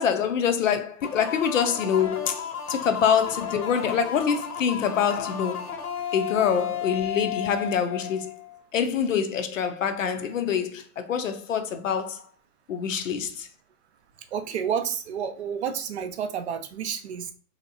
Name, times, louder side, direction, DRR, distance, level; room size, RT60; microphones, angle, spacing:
voice 1, 0.0-5.7 6.1-8.3 8.7-12.2 12.7-13.5, left 7 dB, 55° left, 0.5 m, -25 dB
sound 1, 1.0-8.6, left 8 dB, 75° left, 0.9 m, -33 dB
voice 2, 14.2-17.3, right 7 dB, 45° right, 0.5 m, -30 dB
3.1 x 2.8 x 2.5 m
hypercardioid pair, 145°, 47 cm